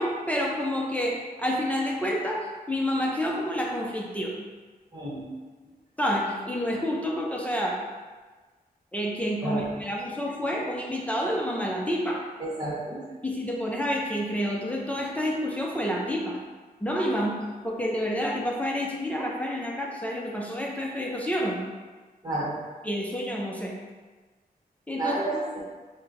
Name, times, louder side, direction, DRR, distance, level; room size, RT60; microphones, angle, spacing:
voice 1, 0.0-4.4 6.0-7.8 8.9-12.2 13.2-16.4 16.8-17.3 17.6-21.6 22.8-23.7 24.9-25.4, equal, 10° left, -3 dB, 0.4 m, -29 dB
voice 2, 4.9-5.2 9.4-9.7 12.4-13.0 17.1-17.2 22.2-22.6 24.9-25.6, right 2 dB, 25° right, -7 dB, 1.2 m, -31 dB
4.3 x 2.1 x 3.9 m, 1.3 s
wide cardioid pair, 160°, 16 cm